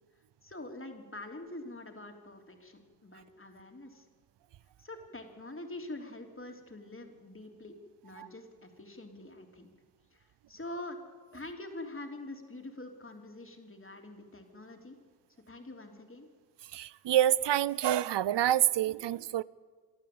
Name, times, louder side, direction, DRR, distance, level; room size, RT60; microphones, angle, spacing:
voice 1, 0.4-4.1 4.8-7.7 8.0-9.7 10.1-11.0 11.3-15.0 15.5-16.3, left 2 dB, 30° left, 3.3 m, -45 dB
voice 2, 16.7-19.4, right 12 dB, 85° right, 0.6 m, -27 dB
23.5 x 13.0 x 8.6 m
cardioid pair, 55°, 41 cm